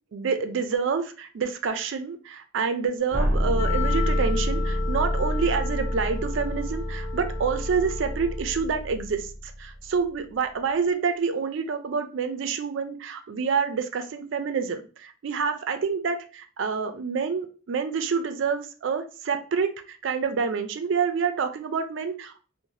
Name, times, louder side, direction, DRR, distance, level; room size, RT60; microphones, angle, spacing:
voice 1, 0.1-9.3 9.6-22.3, right 5 dB, 65° right, 8 dB, 0.4 m, -27 dB
sound 1, 3.1-10.0, equal, ahead, 0.5 m, -28 dB
Wind instrument woodwind instrument, 3.5-8.6, left 10 dB, 75° left, 0.9 m, -36 dB
2.7 x 2.1 x 3.0 m, 0.37 s
head